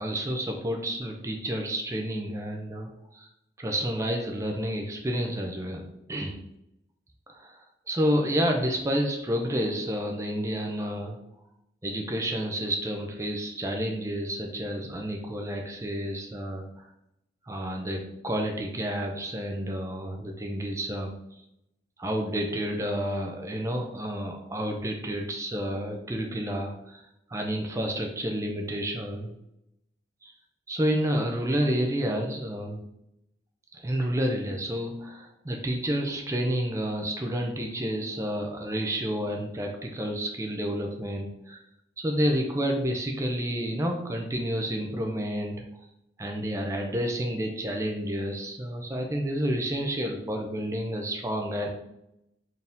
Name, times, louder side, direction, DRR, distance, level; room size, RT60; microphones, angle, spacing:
voice 1, 0.0-3.3 3.6-6.4 7.3-7.6 7.9-11.2 11.8-16.8 17.5-21.4 22.0-29.3 30.2-30.3 30.7-32.8 33.7-41.6 42.0-45.6 46.2-51.7, equal, 15° right, 2 dB, 0.4 m, -30 dB
4.2 x 2.7 x 3.5 m, 0.82 s
head